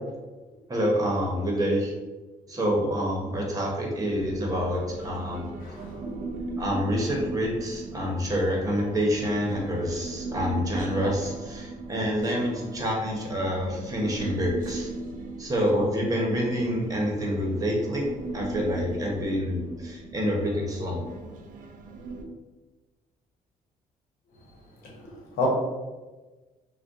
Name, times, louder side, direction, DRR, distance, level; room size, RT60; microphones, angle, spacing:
voice 1, 0.7-1.9 2.5-5.5 6.6-14.9 15.4-18.0 18.3-21.0, equal, 25° right, -2 dB, 0.9 m, -27 dB
Human voice, 4.1-22.2, right 2 dB, 65° right, 0.5 m, -38 dB
voice 2, 5.6-6.3 24.8-25.5, left 3 dB, 80° left, -2 dB, 0.9 m, -32 dB
2.5 x 2.2 x 3.5 m, 1.2 s
cardioid pair, 85°, 15 cm